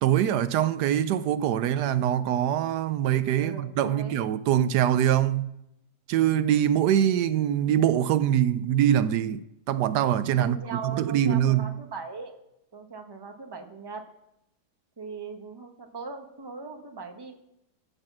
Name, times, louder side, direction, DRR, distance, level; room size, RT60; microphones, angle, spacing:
voice 1, 0.0-5.5 6.1-11.8, right 10 dB, 80° right, 1.2 m, -24 dB
voice 2, 3.4-4.2 10.4-12.3 12.7-14.0 15.0-17.4, right 5 dB, 15° right, 1.0 m, -39 dB
14.5 x 5.6 x 7.2 m
omnidirectional pair, 1.8 m